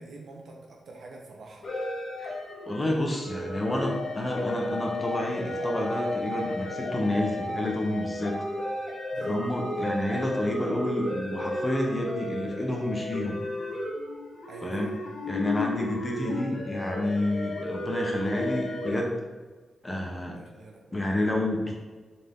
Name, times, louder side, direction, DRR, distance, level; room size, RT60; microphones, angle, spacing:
voice 1, 0.0-1.7 9.1-9.4 14.5-15.0 20.1-21.0, right 2 dB, 55° right, 0 dB, 1.2 m, -46 dB
sound 1, 1.6-19.0, left 1 dB, 45° left, 1.2 m, -33 dB
voice 2, 2.7-8.4 9.2-13.4 14.6-14.9 15.3-19.1 19.8-20.4 20.9-21.8, left 1 dB, 15° left, 0 dB, 0.9 m, -29 dB
7.1 x 4.4 x 3.6 m, 1.3 s
wide cardioid pair, 180°, 0 cm